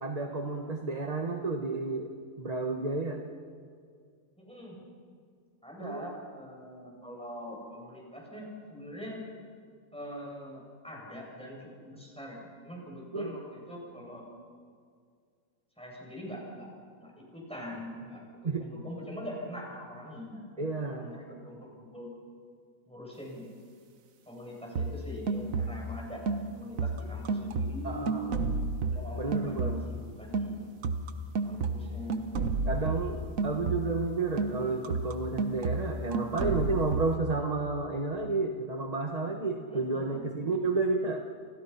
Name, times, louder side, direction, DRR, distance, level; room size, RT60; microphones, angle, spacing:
voice 1, 0.0-2.1 2.4-3.2 5.8-6.1 13.1-13.3 18.4-18.7 20.6-21.1 25.3-25.5 27.8-28.3 29.2-29.8 32.6-41.2, right 3 dB, 30° right, 4 dB, 1.4 m, -31 dB
voice 2, 4.4-4.7 5.6-9.2 9.9-14.2 15.8-16.7 17.0-22.1 22.9-23.4 24.3-26.2 26.5-28.3 28.9-30.6 31.4-32.2 39.7-40.3, equal, 5° left, -3 dB, 7.8 m, -43 dB
sound 1, 24.8-26.0 26.3-30.0 30.3-34.1 34.4-37.2, right 3 dB, 70° right, 1.5 m, -32 dB
30.0 x 26.5 x 5.9 m, 2.1 s
omnidirectional pair, 1.5 m